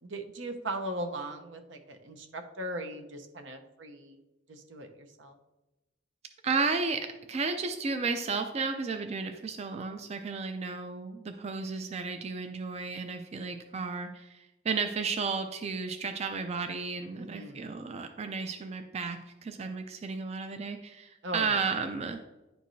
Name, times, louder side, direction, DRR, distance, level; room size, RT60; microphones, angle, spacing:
voice 1, 0.0-4.2 4.5-5.3 17.2-17.6 21.2-21.6, right 1 dB, 75° right, 5 dB, 0.8 m, -39 dB
voice 2, 6.4-22.2, right 4 dB, 35° right, 6 dB, 0.4 m, -33 dB
10.0 x 4.6 x 2.7 m, 1.0 s
head